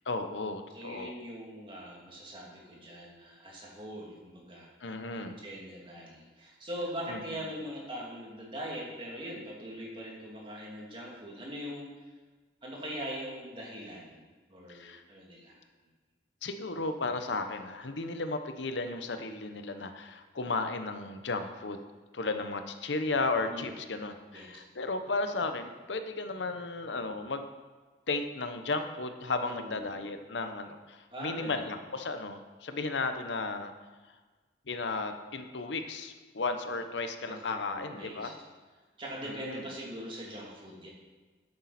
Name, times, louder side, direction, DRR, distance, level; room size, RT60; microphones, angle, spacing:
voice 1, 0.1-1.1 4.8-5.4 7.1-7.2 14.7-15.0 16.4-21.8 22.1-27.5 28.1-33.7 34.7-38.4 39.2-39.7, left 3 dB, 85° left, 8 dB, 0.8 m, -34 dB
voice 2, 0.7-4.7 5.2-11.9 12.6-14.2 14.5-15.6 23.5-23.8 24.3-24.5 29.4-29.8 31.1-31.6 37.2-38.3 39.0-40.9, equal, 30° right, -3 dB, 2.5 m, -41 dB
10.5 x 8.6 x 4.2 m, 1.3 s
head